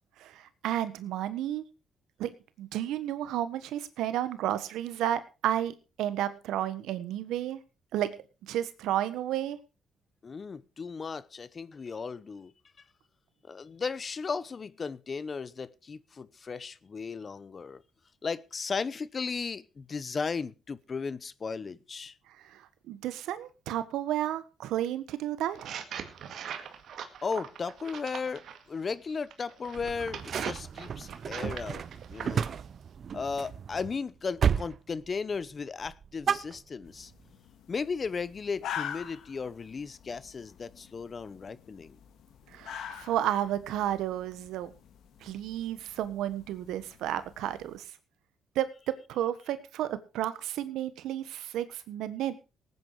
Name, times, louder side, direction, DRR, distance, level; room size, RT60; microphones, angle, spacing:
voice 1, 0.2-1.6 2.2-7.6 7.9-8.1 8.4-9.6 22.5-22.6 22.9-25.7 42.5-44.7 45.2-47.8 48.5-52.3, right 12 dB, 85° right, 1.3 m, -32 dB
voice 2, 10.2-12.5 13.5-17.8 18.2-22.2 27.2-31.8 32.1-32.5 33.1-37.1 37.7-42.0, left 5 dB, 40° left, 0.8 m, -36 dB
sound 1, 25.5-28.6 29.3-32.6, right 8 dB, 70° right, 1.9 m, -41 dB
sound 2, 29.7-34.0 34.4-34.8 35.0-35.5 35.8-37.1, right 7 dB, 55° right, 0.6 m, -32 dB
sound 3, 36.9-47.8, left 9 dB, 75° left, 1.8 m, -45 dB
18.0 x 9.5 x 4.7 m
cardioid pair, 90°, 0 cm